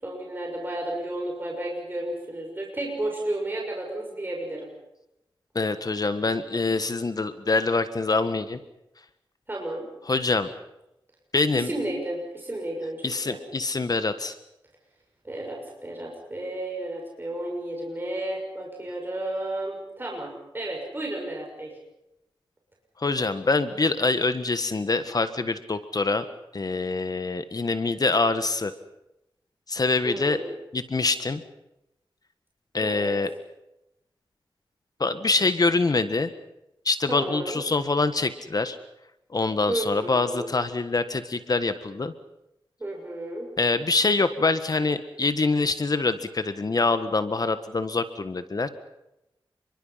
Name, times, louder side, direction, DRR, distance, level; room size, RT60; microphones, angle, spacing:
voice 1, 0.0-4.7 9.5-9.8 11.5-13.4 15.2-21.7 30.0-30.5 32.8-33.2 37.1-37.6 39.7-40.5 42.8-43.5, right 1 dB, 25° right, -1 dB, 6.3 m, -32 dB
voice 2, 5.5-8.6 10.1-10.5 11.3-11.7 13.0-14.4 23.0-26.2 26.5-28.7 29.7-30.4 30.7-31.4 32.7-33.3 35.0-36.3 36.8-38.8 39.3-42.1 43.6-48.7, left 3 dB, 45° left, 11 dB, 1.5 m, -25 dB
29.5 x 22.5 x 5.8 m, 0.88 s
wide cardioid pair, 80°, 9 cm